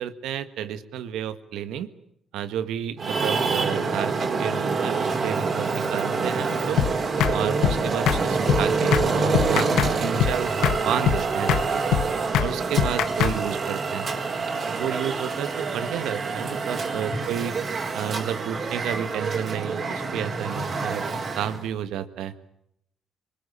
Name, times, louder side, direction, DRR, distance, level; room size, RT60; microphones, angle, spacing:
voice 1, 0.0-1.9 2.3-6.8 7.3-10.5 10.8-12.0 12.4-14.1 14.7-17.6 17.9-21.0 21.4-22.3, right 9 dB, 85° right, 12 dB, 1.6 m, -31 dB
Traffic noise roadway noise, 3.0-21.6, right 4 dB, 45° right, 4.1 m, -26 dB
sound 1, 6.8-6.9 7.2-7.4 7.6-7.8 8.1-8.2 8.5-8.6 8.9-9.1 9.3-9.9 10.2-10.4 10.6-10.8 11.1-11.2 11.5-11.6 11.9-12.1 12.3-12.5 12.8-13.4, left 10 dB, 80° left, 1.1 m, -22 dB
24.0 x 21.0 x 8.7 m, 0.76 s
cardioid pair, 90°, 0 cm